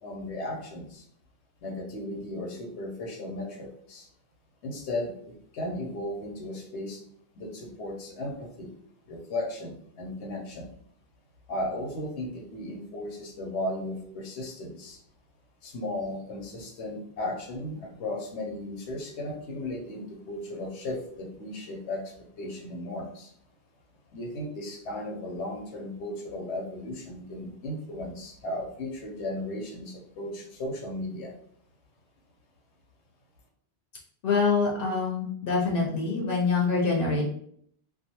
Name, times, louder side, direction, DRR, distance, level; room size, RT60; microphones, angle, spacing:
voice 1, 0.0-1.0 1.6-4.1 4.6-7.0 7.3-8.7 9.1-10.7 11.5-15.0 15.6-23.3 24.1-31.3, left 1 dB, 90° left, 1 dB, 1.0 m, -35 dB
voice 2, 34.2-37.2, left 4 dB, 60° left, -2 dB, 0.7 m, -25 dB
2.3 x 2.3 x 2.8 m, 0.64 s
omnidirectional pair, 1.1 m